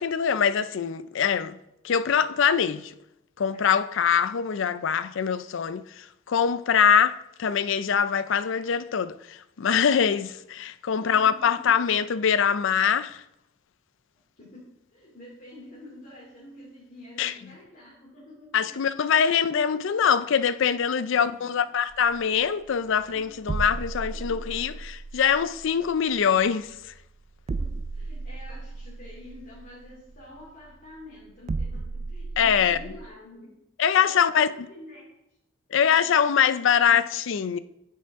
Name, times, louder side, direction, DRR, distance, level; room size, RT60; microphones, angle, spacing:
voice 1, 0.0-1.6 1.8-2.9 3.4-13.2 17.2-17.3 18.5-26.8 32.4-32.8 33.8-34.5 35.7-37.6, left 7 dB, 65° left, 0.4 m, -23 dB
voice 2, 10.9-11.7 14.4-18.9 21.0-21.4 23.1-23.2 24.3-24.4 27.9-33.5 33.9-34.4 34.7-35.0 35.8-35.9 36.8-37.0, left 1 dB, 45° left, 2.7 m, -47 dB
sound 1, 21.9-33.1, right 3 dB, 35° right, 0.3 m, -36 dB
10.0 x 7.6 x 3.6 m
head